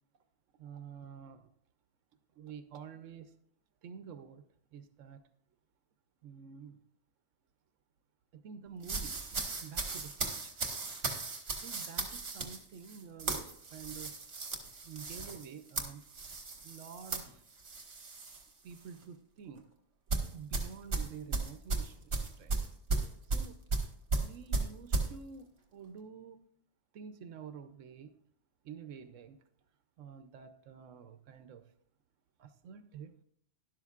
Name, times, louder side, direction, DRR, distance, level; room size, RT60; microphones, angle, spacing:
voice 1, 0.6-1.5 2.4-3.3 3.8-4.4 4.7-5.2 6.2-6.8 8.3-10.5 11.6-14.2 14.8-16.0 16.6-17.4 18.6-19.6 20.3-22.1 22.4-22.6 23.2-23.6 24.2-26.4 26.9-28.1 28.6-29.4 30.0-31.7 32.4-33.1, right 7 dB, 85° right, 9 dB, 1.0 m, -49 dB
sound 1, 8.8-18.4 18.8-19.0 20.1-25.1, right 3 dB, 55° right, 1.6 m, -36 dB
12.5 x 11.5 x 2.4 m, 0.66 s
omnidirectional pair, 1.3 m